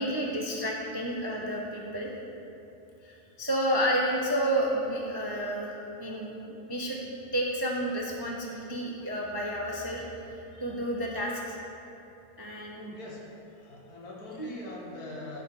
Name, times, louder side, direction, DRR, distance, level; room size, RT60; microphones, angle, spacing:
voice 1, 0.0-2.1 3.0-7.0 7.3-10.0 10.6-11.6 12.4-12.9 14.4-14.5, equal, 30° right, -2 dB, 0.4 m, -30 dB
voice 2, 12.7-15.4, left 2 dB, 80° left, -3 dB, 2.0 m, -43 dB
10.5 x 5.6 x 4.7 m, 3.0 s
omnidirectional pair, 1.6 m